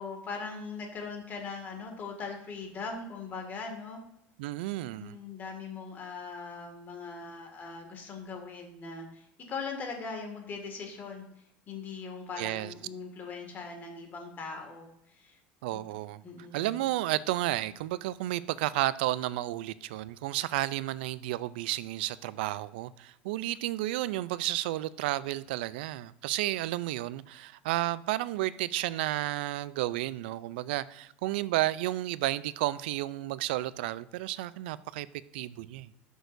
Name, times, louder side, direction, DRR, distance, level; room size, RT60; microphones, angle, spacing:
voice 1, 0.0-4.0 5.0-11.3 11.7-15.4 15.7-15.8 16.2-16.7, left 4 dB, 35° left, 2.0 m, -40 dB
voice 2, 4.4-5.2 12.4-12.7 15.6-16.2 16.5-35.1 35.3-35.9, right 16 dB, 85° right, 0.4 m, -32 dB
12.5 x 6.4 x 2.6 m
supercardioid pair, 135°, 5 cm